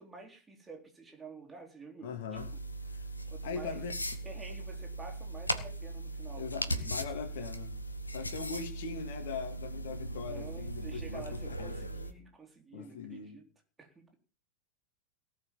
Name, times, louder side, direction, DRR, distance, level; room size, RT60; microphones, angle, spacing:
voice 1, 0.0-2.4 3.3-3.8 4.2-6.9 10.3-13.5 13.8-14.1, right 4 dB, 15° right, 3.9 m, -49 dB
voice 2, 2.0-2.5 2.8-3.1 3.4-3.9 6.4-7.7 8.1-11.9 12.7-13.4, left 5 dB, 55° left, 2.7 m, -41 dB
sound 1, 2.3-12.1, right 1 dB, 80° left, 1.5 m, -38 dB
18.5 x 6.2 x 7.6 m
figure-of-eight pair, 90°, 0 cm